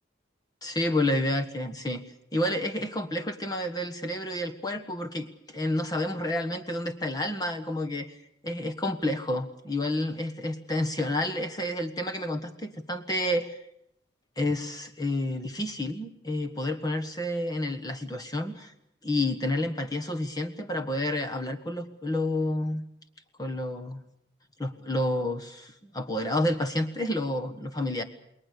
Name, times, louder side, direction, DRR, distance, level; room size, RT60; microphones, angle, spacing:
voice 1, 0.6-2.0 2.3-8.2 8.4-13.6 14.4-18.7 19.0-22.8 23.4-24.0 24.6-28.0, left 1 dB, 20° left, 6 dB, 1.5 m, -30 dB
29.0 x 21.0 x 6.8 m, 0.74 s
head